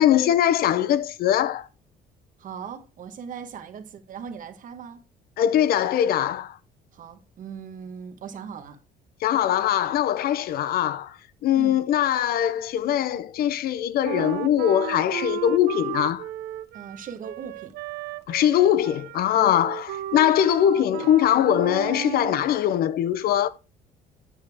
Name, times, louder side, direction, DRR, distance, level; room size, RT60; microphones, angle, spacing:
voice 1, 0.0-1.7 5.4-6.6 9.2-16.3 18.3-23.5, left 11 dB, 65° left, 0.6 m, -22 dB
voice 2, 2.4-5.0 6.9-8.8 11.6-11.8 16.7-17.7, right 7 dB, 50° right, 1.2 m, -39 dB
Wind instrument woodwind instrument, 14.0-22.5, right 14 dB, 75° right, 0.5 m, -34 dB
9.0 x 6.5 x 3.5 m
cardioid pair, 110°, 17 cm